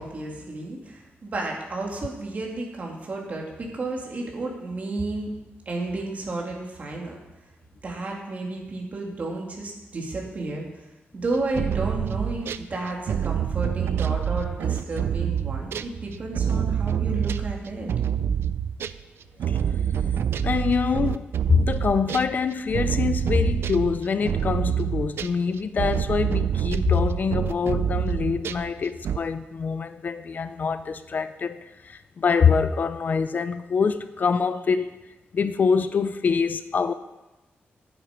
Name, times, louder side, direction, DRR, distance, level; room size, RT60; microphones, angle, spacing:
voice 1, 0.0-5.3 5.7-7.2 7.8-10.7 11.1-17.9, right 2 dB, 40° right, -1 dB, 2.4 m, -32 dB
sound 1, 11.3-12.6 13.1-19.0 19.4-28.7 29.0-29.2, right 8 dB, 80° right, 0.4 m, -26 dB
voice 2, 20.4-35.0 35.3-36.9, left 5 dB, 45° left, 12 dB, 0.4 m, -25 dB
11.0 x 9.2 x 5.1 m, 1.1 s
wide cardioid pair, 160°, 4 cm